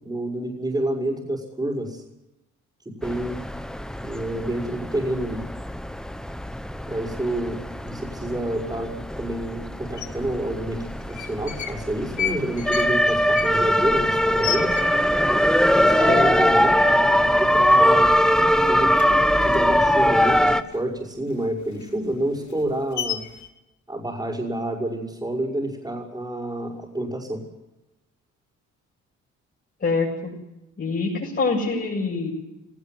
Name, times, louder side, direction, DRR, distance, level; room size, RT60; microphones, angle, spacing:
voice 1, 0.0-2.0 2.9-3.4 4.0-5.4 6.9-14.8 15.7-16.8 17.4-18.2 18.7-18.9 19.4-23.3 23.9-27.4, right 1 dB, 15° right, -7 dB, 5.9 m, -28 dB
sound 1, 3.0-20.6, equal, ahead, 1.2 m, -21 dB
sound 2, 10.0-10.1 11.0-11.8 12.1-15.3 15.6-15.7 16.0-16.5 16.9-17.1 17.4-18.2 18.4-20.8 21.2-23.5, left 9 dB, 70° left, 2.8 m, -32 dB
voice 2, 29.8-30.3 30.8-32.3, left 4 dB, 35° left, -4 dB, 7.4 m, -25 dB
19.0 x 17.0 x 9.4 m, 0.96 s
cardioid pair, 90°, 30 cm